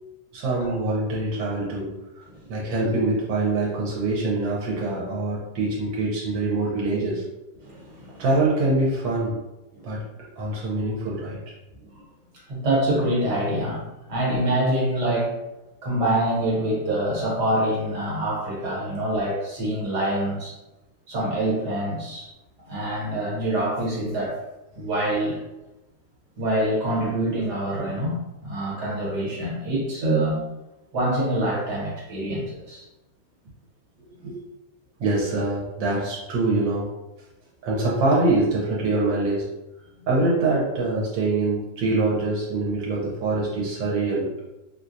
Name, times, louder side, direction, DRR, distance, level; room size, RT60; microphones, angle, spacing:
voice 1, 0.3-2.2 2.5-7.2 8.2-9.4 9.8-11.4 34.2-34.4 35.0-36.9 37.6-39.5 40.1-44.3, right 2 dB, 80° right, -5 dB, 1.4 m, -24 dB
voice 2, 7.6-8.2 12.5-13.8 14.1-15.3 15.8-20.5 21.1-22.3 22.7-24.4 24.8-25.4 26.4-30.4 30.9-32.8, right 1 dB, 65° right, -5 dB, 1.6 m, -25 dB
4.2 x 2.2 x 2.5 m, 1.0 s
omnidirectional pair, 2.0 m